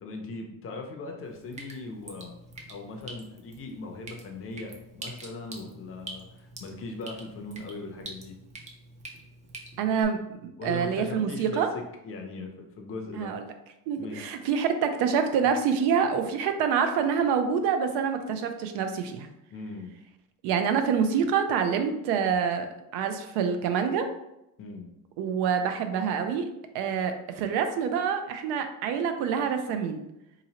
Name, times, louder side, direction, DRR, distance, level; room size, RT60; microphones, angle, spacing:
voice 1, 0.0-2.3 2.7-8.4 10.6-11.6 12.0-13.3 14.0-14.2 19.5-19.9 24.6-24.9, left 3 dB, 35° left, 3 dB, 0.5 m, -39 dB
Drip, 1.2-10.0, right 2 dB, 20° right, 0.3 m, -46 dB
voice 2, 9.8-11.7 13.1-13.4 13.9-19.3 20.4-24.1 25.2-26.5 26.7-30.0, right 7 dB, 85° right, 7 dB, 0.6 m, -26 dB
3.7 x 2.9 x 2.8 m, 0.86 s
cardioid pair, 160°, 39 cm